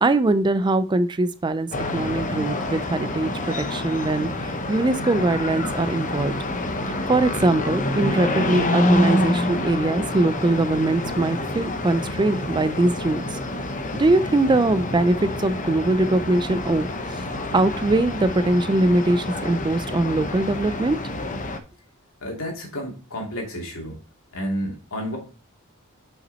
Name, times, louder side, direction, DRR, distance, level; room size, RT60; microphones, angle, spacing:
voice 1, 0.0-6.3 6.9-13.4 13.9-16.9 17.1-17.2 17.5-21.0, right 2 dB, 20° right, 13 dB, 0.4 m, -22 dB
sound 1, 1.7-21.6, left 1 dB, 35° left, 0.9 m, -27 dB
voice 2, 22.2-24.0 24.3-25.2, equal, 65° left, 0 dB, 2.9 m, -31 dB
6.9 x 5.7 x 4.2 m, 0.35 s
head